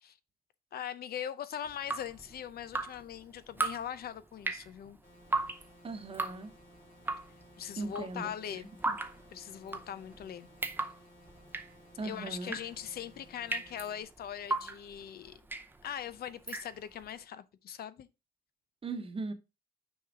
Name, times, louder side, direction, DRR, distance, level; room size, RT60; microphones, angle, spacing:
voice 1, 0.7-5.0 7.6-8.7 9.3-10.5 12.0-15.4 15.8-18.1, left 9 dB, 70° left, 0.6 m, -41 dB
Drip, 1.7-17.1, right 3 dB, 10° right, 0.7 m, -39 dB
sound 1, 5.0-14.0, left 1 dB, 55° left, 2.5 m, -59 dB
voice 2, 5.8-6.5 7.8-9.0 12.0-12.6 18.8-19.3, right 3 dB, 35° right, 1.1 m, -39 dB
6.3 x 4.7 x 3.6 m
cardioid pair, 110°, 17 cm